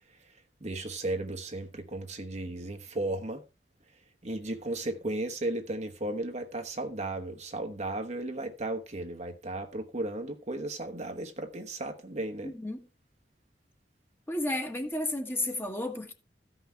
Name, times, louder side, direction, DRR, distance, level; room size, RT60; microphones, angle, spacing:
voice 1, 0.6-3.4 4.2-12.5, right 2 dB, 40° right, 1.1 m, -35 dB
voice 2, 12.4-12.9 14.3-16.1, left 1 dB, 15° left, 1.4 m, -32 dB
14.5 x 5.8 x 4.5 m
head